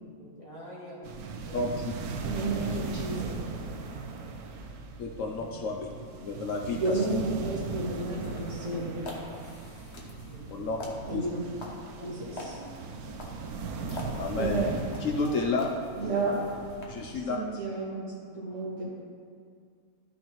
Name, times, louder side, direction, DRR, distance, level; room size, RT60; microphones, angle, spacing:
voice 1, 0.1-1.1 1.4-2.2 3.9-4.7 5.0-5.1 5.4-5.5 10.3-11.2 11.9-12.7 15.2-16.6, equal, 25° left, -8 dB, 2.3 m, -48 dB
sound 1, 1.0-17.2, right 4 dB, 90° right, 1.2 m, -39 dB
voice 2, 1.5-1.9 2.3-2.4 5.0-5.9 6.2-7.0 10.5-10.8 11.1-11.2 14.2-15.7 16.9-17.4, left 3 dB, 65° left, 1 dB, 1.0 m, -31 dB
voice 3, 2.2-3.4 6.8-8.9 11.1-11.4 12.0-12.5 14.4-14.7 16.0-16.3 17.1-18.8, right 3 dB, 55° right, -6 dB, 2.2 m, -32 dB
sound 2, 8.1-16.8, left 1 dB, 50° left, 1.3 m, -45 dB
13.0 x 6.3 x 3.0 m, 2.2 s
omnidirectional pair, 1.5 m